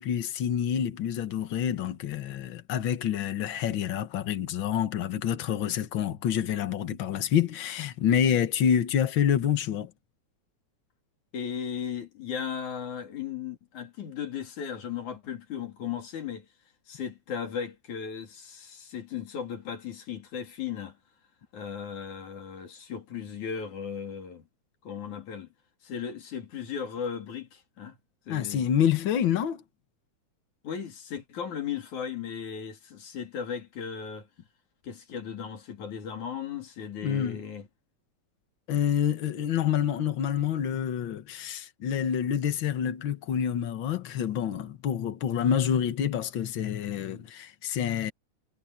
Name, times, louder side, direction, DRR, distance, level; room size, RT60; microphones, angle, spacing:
voice 1, 0.0-9.9 28.3-29.6 37.0-37.4 38.7-48.1, left 9 dB, 50° left, 1.7 m, -27 dB
voice 2, 11.3-16.5 16.9-21.0 21.5-24.4 24.8-25.5 25.8-28.0 28.3-28.7 30.6-34.3 34.8-37.7, left 7 dB, 80° left, 4.3 m, -36 dB
omnidirectional pair, 3.4 m